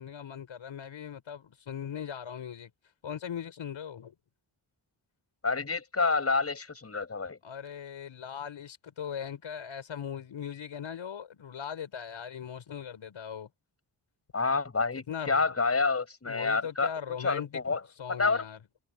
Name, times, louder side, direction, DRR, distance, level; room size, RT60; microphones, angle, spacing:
voice 1, 0.0-2.7 3.0-4.1 7.4-13.5 14.9-15.6 16.2-18.6, left 8 dB, 85° left, 6.1 m, -39 dB
voice 2, 5.4-7.4 14.3-16.9 17.2-17.8 18.1-18.4, left 4 dB, 30° left, 7.3 m, -28 dB
wide cardioid pair, 150°, 46 cm